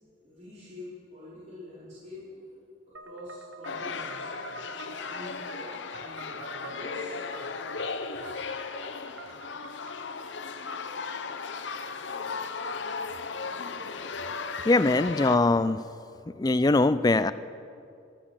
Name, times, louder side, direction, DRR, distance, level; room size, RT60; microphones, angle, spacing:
voice 1, 0.2-2.7 3.0-4.7 5.0-7.7 8.1-8.3 9.2-9.3, left 1 dB, 35° right, -11 dB, 4.7 m, -46 dB
sound 1, 3.0-10.2, right 2 dB, 60° right, 1.2 m, -46 dB
sound 2, 3.6-15.4, left 4 dB, 70° left, 0.8 m, -36 dB
voice 2, 14.7-15.8 16.4-17.3, left 2 dB, 20° left, 14 dB, 0.3 m, -22 dB
13.5 x 12.0 x 7.4 m, 2.4 s
head